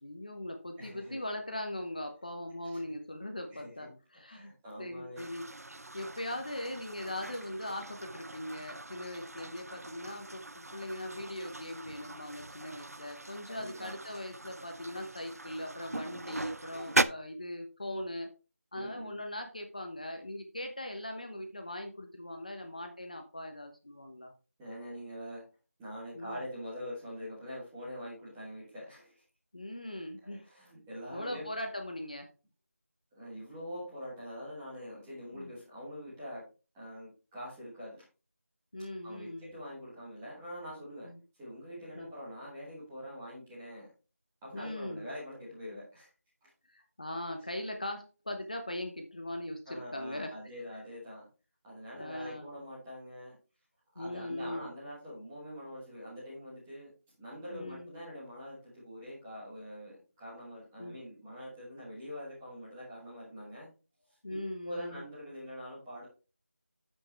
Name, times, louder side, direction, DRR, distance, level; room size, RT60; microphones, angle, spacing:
voice 1, 0.0-4.5 4.8-5.5 5.9-18.3 18.7-24.3 26.1-26.4 29.5-30.4 31.1-32.3 35.3-35.5 38.7-39.5 41.0-41.2 41.9-42.1 44.5-45.1 46.7-50.3 51.9-52.5 54.0-54.7 57.5-57.9 60.8-61.0 64.2-65.0, left 1 dB, 30° left, 4 dB, 1.0 m, -40 dB
voice 2, 0.8-1.2 2.8-2.9 3.5-3.9 4.3-5.2 13.5-14.0 18.7-19.2 24.6-25.4 25.8-29.2 30.2-31.5 33.1-36.4 36.7-38.1 39.0-41.1 41.4-43.9 44.4-46.1 46.4-46.5 49.7-51.3 51.6-53.3 53.9-56.9 57.2-63.7 64.1-64.4 64.6-66.1, equal, 5° right, -8 dB, 1.4 m, -44 dB
sound 1, 5.2-17.0, right 2 dB, 75° right, 0.7 m, -39 dB
9.6 x 7.6 x 3.2 m, 0.32 s
figure-of-eight pair, 175°, 8 cm